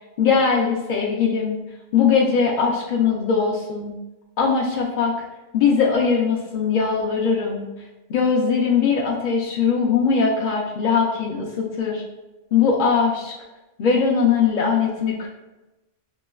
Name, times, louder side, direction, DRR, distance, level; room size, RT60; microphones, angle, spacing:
voice 1, 0.2-1.6 1.9-3.9 4.4-5.1 5.5-7.7 8.1-12.0 12.5-13.3 13.8-15.3, left 5 dB, 60° left, -2 dB, 0.5 m, -20 dB
5.9 x 2.1 x 2.2 m, 1.0 s
omnidirectional pair, 1.2 m